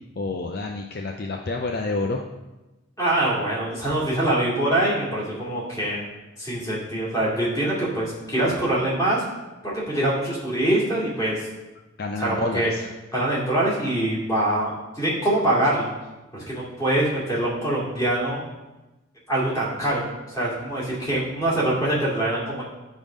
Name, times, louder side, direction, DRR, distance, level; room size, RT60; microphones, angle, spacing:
voice 1, 0.2-2.2 12.0-12.8, left 3 dB, 50° left, 2 dB, 0.5 m, -28 dB
voice 2, 3.0-6.0 6.4-9.2 9.6-11.4 12.2-12.7 13.1-15.9 16.3-18.4 19.3-22.6, right 1 dB, 15° left, -7 dB, 2.5 m, -24 dB
10.0 x 3.6 x 5.0 m, 1.1 s
head